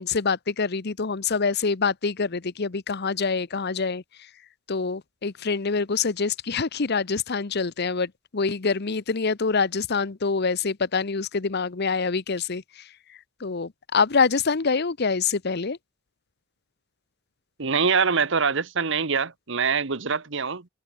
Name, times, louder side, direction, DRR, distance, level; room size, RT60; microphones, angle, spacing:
voice 1, 0.0-4.0 4.7-12.9 13.4-15.8, left 5 dB, 55° left, 0.9 m, -25 dB
voice 2, 17.6-20.7, right 5 dB, 65° right, 1.3 m, -24 dB
open air
head